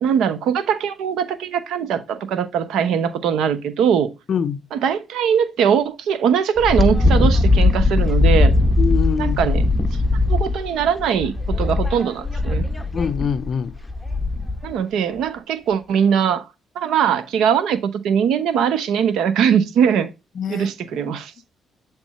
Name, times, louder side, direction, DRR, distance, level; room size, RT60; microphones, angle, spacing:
voice 1, 0.0-4.1 4.7-8.5 9.2-9.6 10.3-12.7 14.6-16.4 16.7-20.1 20.5-21.3, right 8 dB, 80° right, 0.9 m, -21 dB
voice 2, 4.3-4.6 8.8-9.4 12.9-13.7 20.4-20.7 21.0-21.1, left 6 dB, 55° left, 0.5 m, -24 dB
Wind, 6.6-14.7, left 2 dB, 10° left, 0.9 m, -19 dB
8.3 x 3.5 x 4.2 m
cardioid pair, 90°, 0 cm